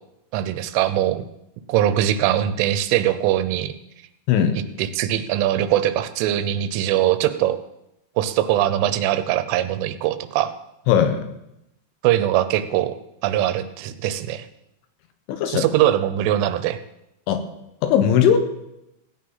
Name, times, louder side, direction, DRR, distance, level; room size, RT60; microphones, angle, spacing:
voice 1, 0.3-1.3 1.7-3.7 4.8-7.6 8.2-10.5 12.0-13.0 13.2-14.5 15.5-16.8, right 12 dB, 90° right, 12 dB, 3.3 m, -21 dB
voice 2, 4.3-4.6 10.9-11.2 15.3-15.7 17.3-17.4 17.8-18.4, left 8 dB, 80° left, 8 dB, 3.6 m, -18 dB
16.5 x 8.7 x 5.6 m, 0.85 s
omnidirectional pair, 5.5 m